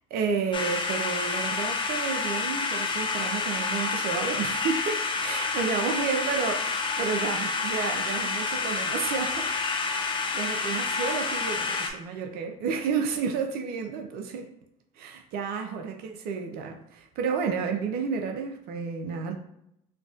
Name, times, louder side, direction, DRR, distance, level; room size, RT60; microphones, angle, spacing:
voice 1, 0.1-14.5 15.0-19.3, right 5 dB, 60° right, 4 dB, 0.6 m, -31 dB
sound 1, 0.5-11.9, left 4 dB, 25° left, 0.6 m, -29 dB
4.5 x 2.3 x 2.5 m, 0.79 s
hypercardioid pair, 70°, 18 cm